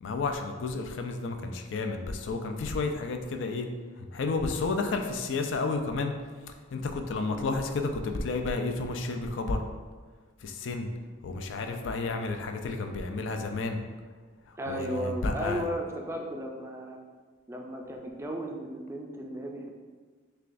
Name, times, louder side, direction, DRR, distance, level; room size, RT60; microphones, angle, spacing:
voice 1, 0.0-3.7 4.0-6.1 6.5-9.6 10.4-10.9 11.2-13.8 14.5-15.7, left 3 dB, 70° left, 5 dB, 0.4 m, -31 dB
voice 2, 14.6-17.0 17.5-19.7, equal, 15° right, 1 dB, 0.3 m, -35 dB
6.5 x 2.3 x 2.5 m, 1.5 s
head